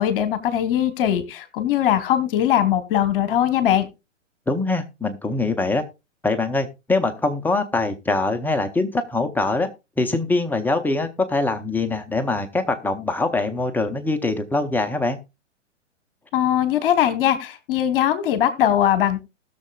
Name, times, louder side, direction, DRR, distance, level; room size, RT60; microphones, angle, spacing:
voice 1, 0.0-3.9 16.3-19.2, left 10 dB, 45° left, 12 dB, 1.3 m, -20 dB
voice 2, 4.5-5.8 6.2-9.7 10.0-15.2, left 2 dB, 5° left, 5 dB, 0.7 m, -23 dB
19.5 x 6.8 x 2.3 m, 0.26 s
figure-of-eight pair, 115°, 37 cm